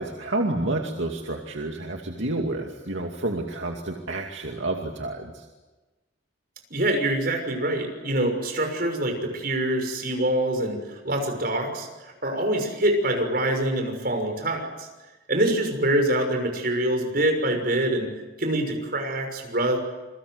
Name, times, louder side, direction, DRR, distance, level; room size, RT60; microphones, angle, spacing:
voice 1, 0.0-5.5, right 2 dB, 75° right, 2 dB, 2.5 m, -29 dB
voice 2, 6.7-14.9 15.3-18.1 18.4-19.8, right 1 dB, 50° right, 5 dB, 6.4 m, -25 dB
28.5 x 22.5 x 8.1 m, 1.1 s
head